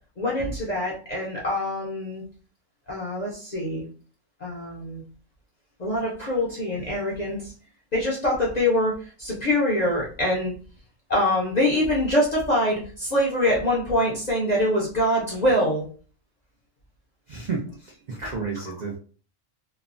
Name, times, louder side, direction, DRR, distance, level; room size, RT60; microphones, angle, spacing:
voice 1, 0.2-2.2 2.9-3.8 4.4-5.0 5.8-7.5 7.9-10.5 11.1-15.8, left 1 dB, 50° left, -4 dB, 0.5 m, -24 dB
voice 2, 17.3-19.0, right 4 dB, 70° right, -1 dB, 0.4 m, -32 dB
3.0 x 2.0 x 2.5 m, 0.40 s
omnidirectional pair, 1.5 m